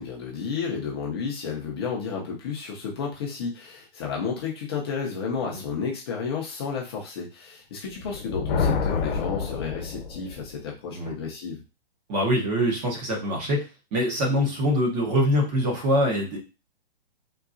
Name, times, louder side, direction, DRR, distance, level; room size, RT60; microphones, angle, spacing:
voice 1, 0.0-11.6, left 5 dB, 25° left, -2 dB, 0.5 m, -32 dB
Thunder, 7.9-10.5, left 5 dB, 65° left, 0.9 m, -28 dB
voice 2, 12.1-16.4, equal, 20° right, -1 dB, 0.6 m, -24 dB
3.7 x 2.2 x 2.4 m, 0.30 s
hypercardioid pair, 155°, 32 cm